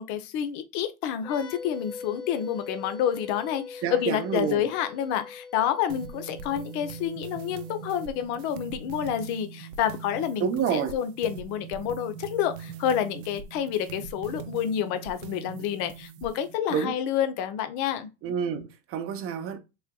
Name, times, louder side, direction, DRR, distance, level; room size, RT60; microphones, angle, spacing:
voice 1, 0.0-18.1, left 9 dB, 65° left, 0.7 m, -29 dB
sound 1, 1.2-8.7, left 5 dB, 15° left, 0.3 m, -43 dB
voice 2, 3.8-4.6 10.4-11.0 16.7-16.9 18.2-19.6, right 7 dB, 45° right, 0.7 m, -28 dB
sound 2, 5.9-16.6, right 7 dB, 85° right, 0.5 m, -42 dB
3.9 x 2.7 x 2.2 m
supercardioid pair, 110°, 32 cm